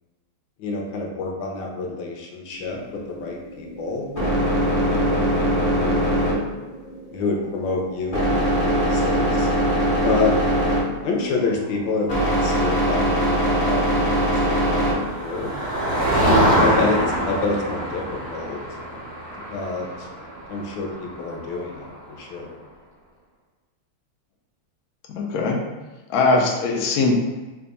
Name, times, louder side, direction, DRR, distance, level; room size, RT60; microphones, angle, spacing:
voice 1, 0.6-2.8 3.1-4.1 4.9-6.2 7.1-9.5 10.0-10.3 11.0-15.5 16.2-18.0 18.3-18.6 19.5-20.1 20.5-22.6, left 3 dB, 70° left, 0 dB, 1.2 m, -28 dB
sound 1, 2.5-15.5, equal, 45° left, 0.6 m, -22 dB
Motor vehicle (road), 14.2-22.0, right 1 dB, 80° right, 0.5 m, -25 dB
voice 2, 25.1-25.6 26.1-27.1, left 3 dB, 90° left, 0 dB, 0.8 m, -20 dB
3.4 x 2.3 x 3.9 m, 1.2 s
omnidirectional pair, 2.3 m